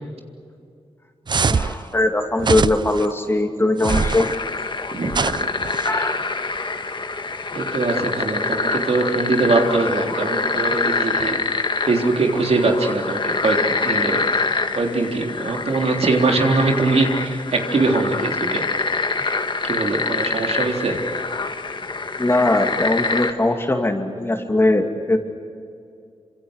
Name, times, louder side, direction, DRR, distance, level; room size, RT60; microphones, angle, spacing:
sound 1, 1.3-1.8 2.4-3.1 3.8-4.4 5.1-5.9, right 5 dB, 45° right, 0.5 m, -23 dB
voice 1, 1.5-4.3 5.8-6.2 22.2-25.2, left 2 dB, 20° left, 4 dB, 2.7 m, -20 dB
sound 2, 3.9-23.3, left 3 dB, 45° left, 1.6 m, -25 dB
voice 2, 7.5-11.4 11.9-14.3 14.7-18.7 19.6-21.1, right 3 dB, 65° right, 2 dB, 3.6 m, -22 dB
28.0 x 26.0 x 6.6 m, 2.4 s
wide cardioid pair, 120°, 11 cm